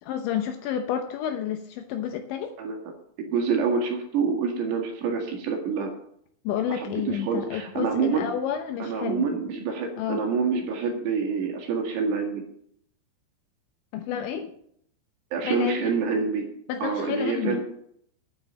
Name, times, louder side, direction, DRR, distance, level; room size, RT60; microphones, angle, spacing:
voice 1, 0.0-2.5 6.4-9.3 10.0-10.2 13.9-14.5 15.4-15.8 16.7-17.6, left 9 dB, 75° left, 6 dB, 2.9 m, -30 dB
voice 2, 3.2-5.9 6.7-8.3 8.8-12.4 15.3-16.5 16.8-17.6, right 5 dB, 65° right, 2 dB, 3.6 m, -27 dB
9.3 x 9.1 x 7.4 m, 0.68 s
omnidirectional pair, 6.0 m